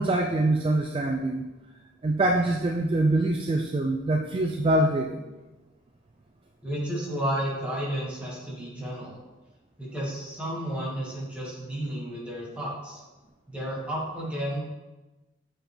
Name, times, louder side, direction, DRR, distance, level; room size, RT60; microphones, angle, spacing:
voice 1, 0.0-1.5 2.0-5.2, right 1 dB, 25° right, 3 dB, 0.4 m, -24 dB
voice 2, 6.6-9.2 9.8-13.0 13.5-14.6, right 1 dB, 5° right, -7 dB, 2.1 m, -32 dB
7.8 x 4.3 x 3.5 m, 1.1 s
head